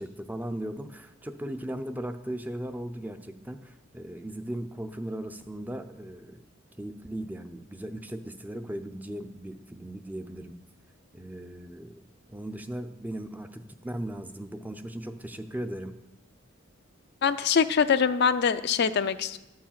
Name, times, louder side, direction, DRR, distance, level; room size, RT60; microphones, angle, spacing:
voice 1, 0.0-6.4 6.8-10.6 11.1-12.0 12.3-16.0, right 1 dB, 10° right, 8 dB, 0.5 m, -37 dB
voice 2, 17.2-19.4, left 6 dB, 55° left, 11 dB, 0.4 m, -24 dB
12.0 x 4.8 x 7.4 m, 0.95 s
head